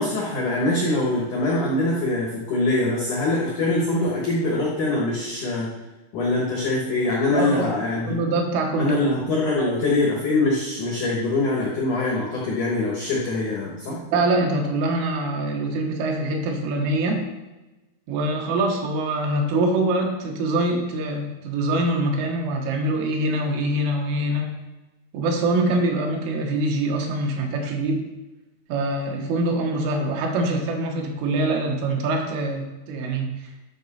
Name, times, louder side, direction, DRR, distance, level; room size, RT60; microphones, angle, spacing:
voice 1, 0.0-5.7 6.1-8.2 8.8-14.0, left 2 dB, 85° left, -3 dB, 1.7 m, -23 dB
voice 2, 7.3-9.0 9.6-9.7 14.1-17.3 18.1-24.5 25.1-28.0 28.7-33.5, right 2 dB, 80° right, 2 dB, 3.7 m, -24 dB
12.0 x 6.0 x 4.2 m, 1.1 s
omnidirectional pair, 5.8 m